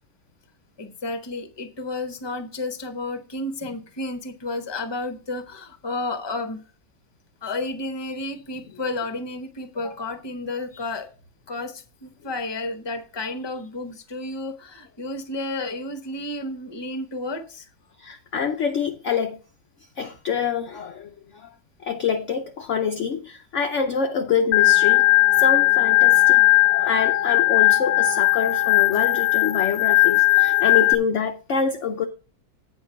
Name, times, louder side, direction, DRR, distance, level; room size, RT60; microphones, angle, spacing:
voice 1, 0.8-6.6 7.4-11.1 11.5-17.7, left 2 dB, 20° left, 0.8 m, -31 dB
voice 2, 18.0-19.4 20.0-21.5 21.8-25.1 25.4-32.1, left 6 dB, 65° left, 0.7 m, -26 dB
Organ, 24.5-30.9, left 18 dB, 85° left, 1.3 m, -18 dB
8.8 x 4.4 x 6.9 m
omnidirectional pair, 1.9 m